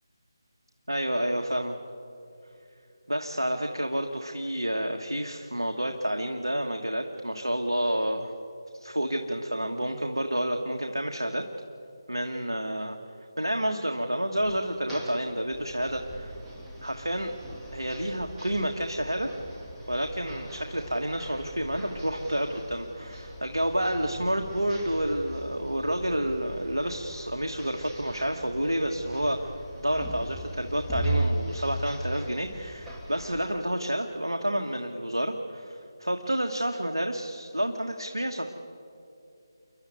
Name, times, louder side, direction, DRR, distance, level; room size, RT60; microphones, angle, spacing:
voice 1, 0.9-1.8 3.1-8.3 8.8-11.4 12.1-13.0 13.4-16.4 16.8-17.4 17.7-19.3 19.9-38.5, right 1 dB, 85° right, 4 dB, 1.5 m, -29 dB
sound 1, 14.3-33.5, right 1 dB, 5° right, 2.4 m, -38 dB
29.0 x 11.0 x 9.3 m, 2.7 s
figure-of-eight pair, 155°, 2 cm